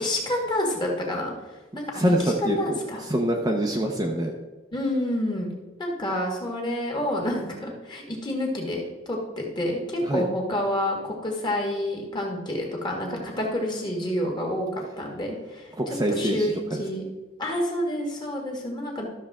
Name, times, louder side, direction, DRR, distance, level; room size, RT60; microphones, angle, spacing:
voice 1, 0.0-2.2 2.4-3.0 4.7-5.5 5.8-14.7 15.0-15.7 16.1-17.0 17.4-19.1, left 1 dB, 25° left, 0 dB, 1.8 m, -28 dB
voice 2, 1.9-4.4 10.0-10.2 15.8-16.8, equal, 20° right, 0 dB, 0.7 m, -25 dB
12.5 x 6.5 x 3.6 m, 1.1 s
head